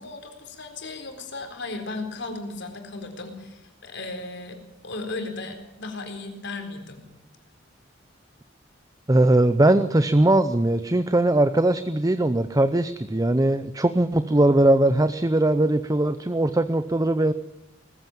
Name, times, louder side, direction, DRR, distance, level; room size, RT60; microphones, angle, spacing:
voice 1, 0.0-4.6 4.8-7.1, left 3 dB, 65° left, 5 dB, 4.2 m, -35 dB
voice 2, 9.1-17.3, right 1 dB, 20° right, 12 dB, 0.7 m, -20 dB
20.0 x 15.0 x 9.1 m, 0.88 s
head